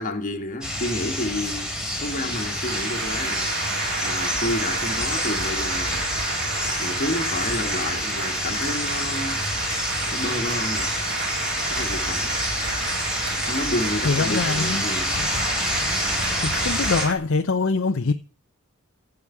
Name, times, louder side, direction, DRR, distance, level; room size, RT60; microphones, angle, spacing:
voice 1, 0.0-1.7 2.0-3.5 4.0-6.1 6.8-9.4 10.1-11.0 11.7-12.4 13.5-15.1, left 1 dB, 40° left, 1.8 m, -30 dB
sound 1, 0.6-17.0, left 1 dB, 5° right, 3.8 m, -28 dB
sound 2, 2.0-17.1, right 3 dB, 50° right, 3.3 m, -30 dB
voice 2, 14.0-14.8 16.4-18.1, left 4 dB, 60° left, 0.6 m, -23 dB
15.0 x 5.1 x 8.5 m
head